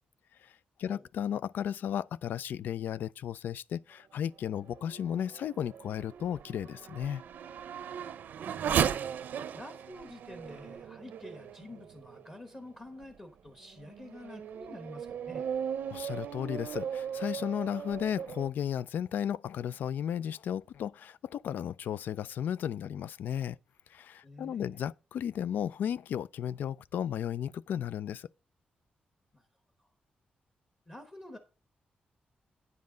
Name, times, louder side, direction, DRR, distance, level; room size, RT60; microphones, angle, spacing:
voice 1, 0.4-7.2 15.9-23.6 23.9-28.3, left 9 dB, 85° left, 0.3 m, -34 dB
Race car auto racing / Accelerating revving vroom, 4.5-12.4 13.0-13.1 13.7-18.5, right 8 dB, 80° right, 0.6 m, -37 dB
voice 2, 8.0-8.6 9.5-15.5 24.2-24.8 29.3-29.5 29.8-29.9 30.9-31.4, left 1 dB, 20° left, 1.1 m, -48 dB
9.5 x 7.4 x 3.8 m
wide cardioid pair, 165°, 3 cm